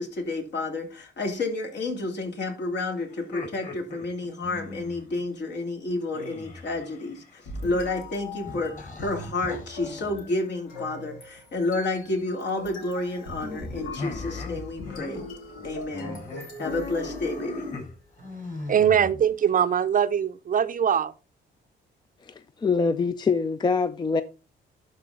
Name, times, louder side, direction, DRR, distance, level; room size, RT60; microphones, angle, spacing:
voice 1, 0.0-15.3 15.6-17.6, left 2 dB, 60° left, 2.7 m, -30 dB
sound 1, 3.1-5.1 6.1-7.5 8.5-10.1 11.7-12.1 14.0-15.2 15.5-15.6 15.9-19.5, left 3 dB, 40° left, 4.7 m, -39 dB
sound 2, 7.4-17.8, left 2 dB, 85° left, 2.5 m, -40 dB
voice 2, 18.6-21.1, right 8 dB, 45° right, 0.6 m, -22 dB
voice 3, 22.2-24.2, left 4 dB, 20° left, 0.4 m, -24 dB
12.0 x 4.1 x 3.9 m
cardioid pair, 90°, 20 cm